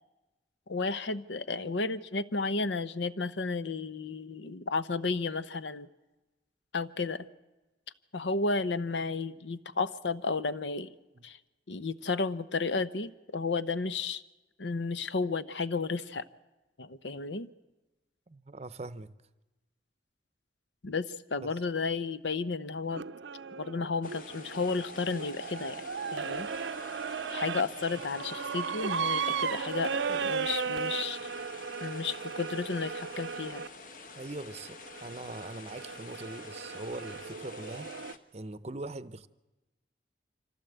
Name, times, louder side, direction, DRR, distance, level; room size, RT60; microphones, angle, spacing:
voice 1, 0.7-5.9 6.7-7.3 8.1-10.9 11.2-11.4 11.7-14.2 14.6-16.2 16.8-17.5 20.8-23.1 23.6-25.8 26.1-26.5 27.3-31.3 31.8-33.6, left 4 dB, 80° left, 0.8 m, -33 dB
voice 2, 18.3-19.1 34.2-39.3, right 2 dB, 35° right, 0.7 m, -42 dB
sound 1, 22.9-33.7 34.5-38.1, right 6 dB, 80° right, 0.6 m, -36 dB
sound 2, 24.0-38.2, left 4 dB, 45° left, 1.2 m, -49 dB
25.0 x 16.0 x 8.0 m
head